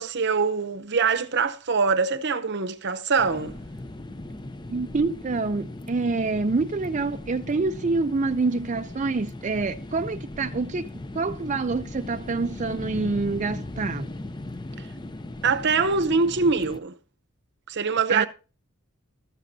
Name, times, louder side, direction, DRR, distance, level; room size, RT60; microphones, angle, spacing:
voice 1, 0.0-3.6 15.4-17.0 17.7-18.3, right 4 dB, 55° right, 0.8 m, -23 dB
sound 1, 3.2-16.8, left 2 dB, 20° left, 0.5 m, -38 dB
voice 2, 4.7-10.9 11.1-14.1 18.1-18.3, right 3 dB, 35° right, 0.4 m, -26 dB
13.5 x 13.5 x 2.7 m
head